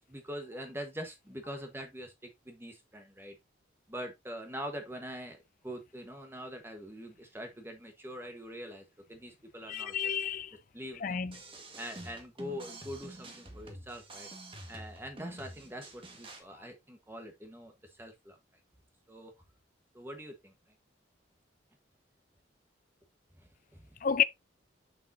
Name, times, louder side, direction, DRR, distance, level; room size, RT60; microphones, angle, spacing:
voice 1, 0.1-3.4 3.9-5.4 5.6-9.9 10.7-11.2 11.8-14.3 14.7-18.4 19.1-19.3 19.9-20.5 23.4-23.9, equal, 10° right, 1.2 m, -43 dB
voice 2, 9.7-10.6 10.9-11.4 24.0-24.2, left 8 dB, 45° left, 0.4 m, -30 dB
sound 1, 11.3-16.4, right 1 dB, 25° right, 1.6 m, -47 dB
6.9 x 6.1 x 2.7 m
head